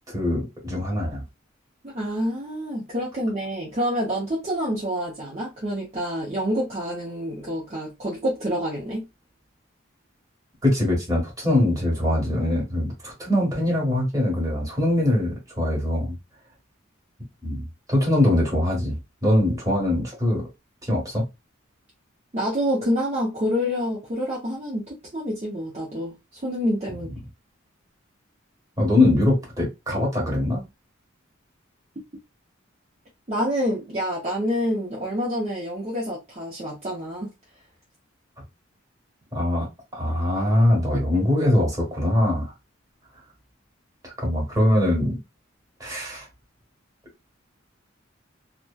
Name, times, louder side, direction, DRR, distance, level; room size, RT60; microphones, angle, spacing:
voice 1, 0.1-1.2 10.6-16.2 17.4-17.6 17.9-20.4 20.8-21.2 28.8-30.6 39.3-39.7 39.9-42.5 44.0-45.2 45.8-46.3, left 1 dB, 20° right, 1.3 m, -22 dB
voice 2, 1.8-9.1 22.3-27.1 33.3-37.3, equal, 35° right, 0.7 m, -27 dB
2.9 x 2.1 x 2.2 m
head